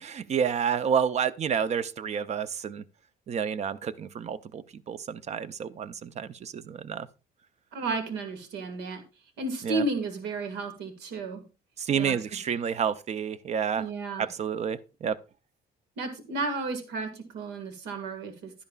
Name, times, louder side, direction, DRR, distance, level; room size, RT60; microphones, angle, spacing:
voice 1, 0.0-2.8 3.3-7.1 9.6-9.8 11.8-13.9 14.2-15.2, right 7 dB, 40° right, 0.6 m, -29 dB
voice 2, 7.7-9.0 9.4-11.4 11.9-12.2 13.8-14.3 16.0-18.5, right 3 dB, 85° right, 1.8 m, -33 dB
11.5 x 10.5 x 2.4 m
cardioid pair, 110°, 17 cm